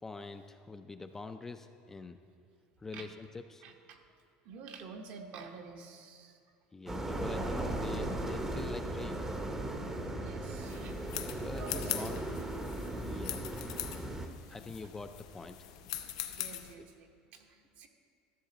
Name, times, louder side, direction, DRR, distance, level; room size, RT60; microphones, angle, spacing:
voice 1, 0.0-2.2 2.8-3.7 6.7-9.3 11.3-12.2 13.0-13.4 14.5-15.7, left 3 dB, 15° left, 7 dB, 0.3 m, -44 dB
voice 2, 3.6-4.2 4.4-6.4 10.2-11.0 11.4-12.1 12.7-13.4 14.4-14.6 14.8-14.9 16.1-17.9, right 5 dB, 55° right, 5 dB, 0.9 m, -50 dB
sound 1, 6.9-14.3, right 1 dB, 15° right, 0.7 m, -37 dB
sound 2, 10.6-16.7, left 12 dB, 90° left, 0.6 m, -42 dB
13.0 x 7.2 x 3.9 m, 2.3 s
supercardioid pair, 135°, 3 cm